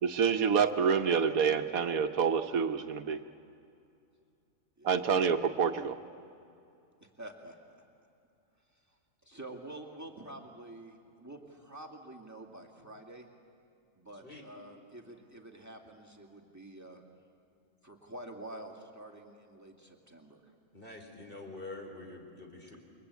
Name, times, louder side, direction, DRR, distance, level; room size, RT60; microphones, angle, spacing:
voice 1, 0.0-3.2 4.8-6.0, right 6 dB, 80° right, 8 dB, 1.4 m, -27 dB
voice 2, 7.2-7.6 9.2-13.3 14.0-17.1 17.8-20.4, right 1 dB, 10° right, 1 dB, 2.2 m, -48 dB
voice 3, 20.7-22.8, left 2 dB, 40° left, 2 dB, 4.0 m, -46 dB
28.5 x 23.5 x 8.3 m, 2.6 s
omnidirectional pair, 1.5 m